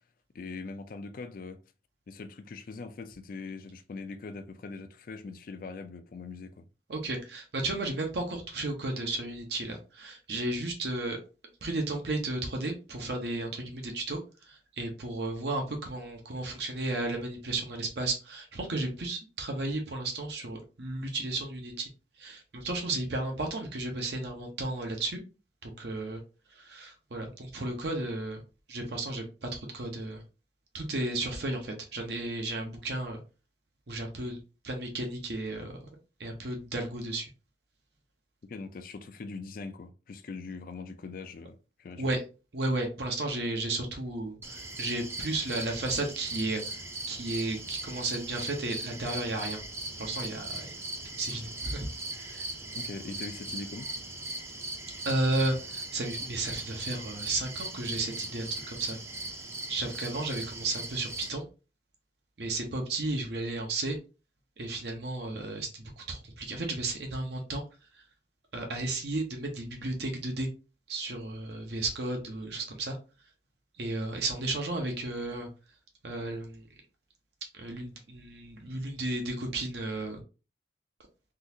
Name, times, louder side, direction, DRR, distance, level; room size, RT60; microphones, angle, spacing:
voice 1, 0.3-1.6 2.1-6.6 38.5-42.1 52.7-53.9, left 4 dB, 50° left, 0.4 m, -41 dB
voice 2, 6.9-11.2 11.6-14.2 14.5-21.9 22.2-25.2 25.6-26.2 26.6-28.4 28.7-30.2 30.7-33.2 33.9-34.4 34.6-35.8 36.2-37.3 42.0-42.2 42.5-46.6 47.1-49.6 50.0-50.7 51.2-51.9 52.2-52.5 55.1-59.0 59.7-61.4 62.4-64.0 64.6-67.6 68.5-70.5 70.9-73.0 73.8-75.5 76.0-76.6 77.6-80.2, right 2 dB, 65° right, 0.8 m, -33 dB
sound 1, 44.4-61.3, right 2 dB, 15° right, 0.5 m, -39 dB
3.8 x 2.4 x 2.7 m
head